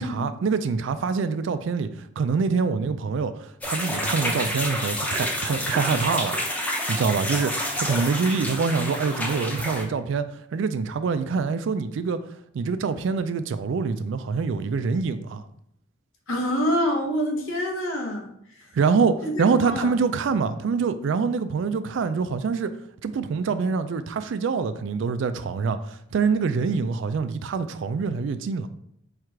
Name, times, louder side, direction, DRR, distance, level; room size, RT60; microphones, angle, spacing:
voice 1, 0.0-1.9 2.2-6.4 6.9-10.2 10.5-12.2 12.5-15.4 18.7-22.7 23.0-28.7, right 5 dB, 60° right, 0.3 m, -25 dB
sound 1, 3.6-9.8, equal, 5° left, 0.5 m, -29 dB
voice 2, 16.3-18.3 18.6-18.7 19.2-19.9, equal, 80° left, 1.0 m, -26 dB
4.6 x 2.4 x 4.5 m
head